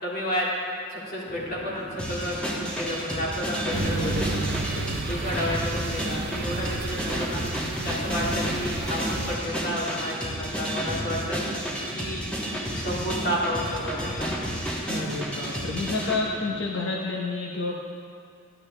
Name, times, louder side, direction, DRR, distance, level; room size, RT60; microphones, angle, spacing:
voice 1, 0.0-0.5 0.9-4.3 5.1-7.4 7.8-11.4 11.9-12.2 12.7-14.3, equal, 50° left, -5 dB, 2.1 m, -31 dB
Chatter / Fixed-wing aircraft airplane, 1.3-16.7, equal, 15° right, 1.6 m, -42 dB
sound 1, 2.0-16.2, equal, 5° left, 1.1 m, -31 dB
voice 2, 3.7-5.0 8.4-8.6 14.9-17.8, left 3 dB, 65° left, -1 dB, 0.8 m, -30 dB
sound 2, 3.7-9.3, right 4 dB, 55° right, 0.5 m, -33 dB
11.5 x 10.5 x 3.3 m, 2.3 s
head